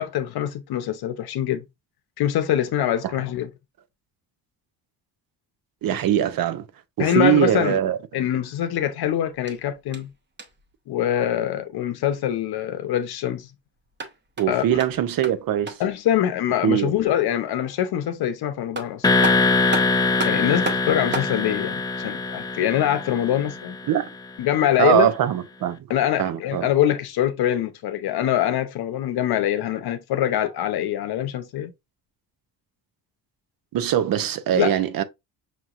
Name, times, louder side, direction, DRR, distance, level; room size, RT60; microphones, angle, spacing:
voice 1, 0.0-1.6 2.2-3.5 7.0-7.8 8.1-10.1 10.9-13.5 14.5-14.8 15.8-19.1 20.2-23.8 24.4-25.1 25.9-31.7 34.5-34.8, left 11 dB, 70° left, 0.7 m, -24 dB
voice 2, 5.8-6.6 7.0-8.0 14.4-15.8 16.6-16.9 23.9-24.1 24.8-25.8 26.2-26.7 33.7-35.0, right 11 dB, 60° right, 0.7 m, -22 dB
sound 1, 9.3-10.7 13.8-16.0 18.3-18.4 18.7-21.4, right 3 dB, 25° right, 0.9 m, -34 dB
sound 2, 19.0-23.9, left 3 dB, 10° left, 0.5 m, -23 dB
5.8 x 2.9 x 2.4 m
cardioid pair, 125°, 39 cm